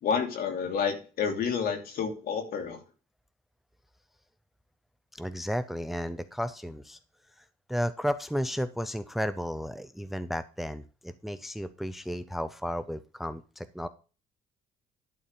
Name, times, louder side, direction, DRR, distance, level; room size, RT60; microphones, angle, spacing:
voice 1, 0.0-2.8, left 6 dB, 65° left, 4 dB, 2.8 m, -29 dB
voice 2, 5.2-7.0 7.7-13.9, equal, ahead, 12 dB, 0.6 m, -33 dB
11.5 x 4.3 x 6.8 m, 0.34 s
cardioid pair, 110°, 17 cm